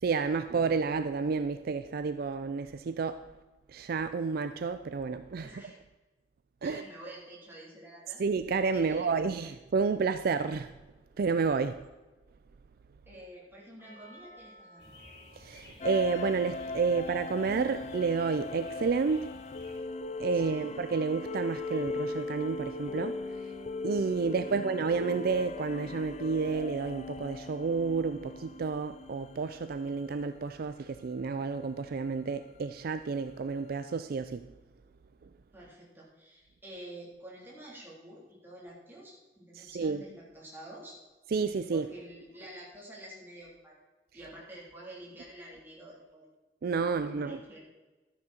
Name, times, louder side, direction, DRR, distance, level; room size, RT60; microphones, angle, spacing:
voice 1, 0.0-3.2 3.7-5.5 6.6-6.8 8.2-10.7 11.2-11.9 15.4-19.3 20.2-23.5 23.8-34.5 39.5-40.0 41.3-41.9 46.6-47.4, right 5 dB, 55° right, 0.4 m, -30 dB
voice 2, 5.4-5.8 6.6-8.2 8.7-9.5 13.1-14.9 20.3-20.7 24.2-24.6 35.5-41.0 41.7-43.8 44.1-46.3 46.8-47.6, right 1 dB, 15° right, 3.5 m, -49 dB
Percussion, 13.8-18.3, equal, 20° left, 4.8 m, -58 dB
sound 1, 14.8-19.8, left 1 dB, 65° left, 3.1 m, -53 dB
sound 2, 15.8-29.9, left 3 dB, 40° left, 0.5 m, -39 dB
13.5 x 9.8 x 4.4 m
head